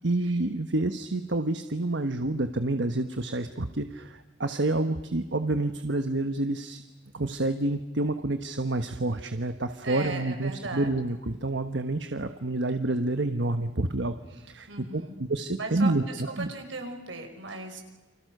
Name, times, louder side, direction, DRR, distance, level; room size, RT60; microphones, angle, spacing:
voice 1, 0.0-6.8 7.1-14.7 14.9-16.5, right 2 dB, 65° right, 9 dB, 1.3 m, -28 dB
voice 2, 9.8-10.9 14.7-15.2 15.6-17.8, right 3 dB, 80° right, 4 dB, 5.9 m, -37 dB
29.5 x 26.0 x 6.7 m, 1.1 s
head